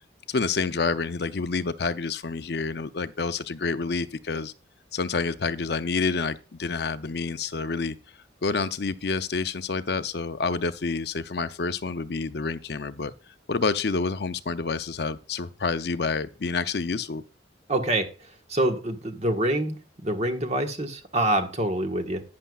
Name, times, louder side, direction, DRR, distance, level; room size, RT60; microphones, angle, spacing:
voice 1, 0.3-4.5 4.9-7.9 8.4-13.1 13.5-17.2, left 4 dB, 60° left, 0.6 m, -28 dB
voice 2, 17.7-18.1 18.5-19.8 20.0-22.2, right 1 dB, 35° right, 1.4 m, -25 dB
11.5 x 9.5 x 2.4 m
head